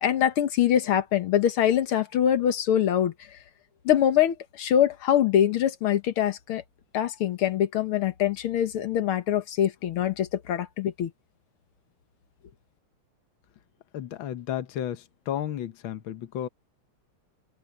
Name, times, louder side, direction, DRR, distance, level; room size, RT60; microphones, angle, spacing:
voice 1, 0.0-3.1 3.9-6.6 6.9-11.1, left 10 dB, 85° left, 2.1 m, -24 dB
voice 2, 13.9-16.5, left 10 dB, 70° left, 1.8 m, -33 dB
omnidirectional pair, 2.3 m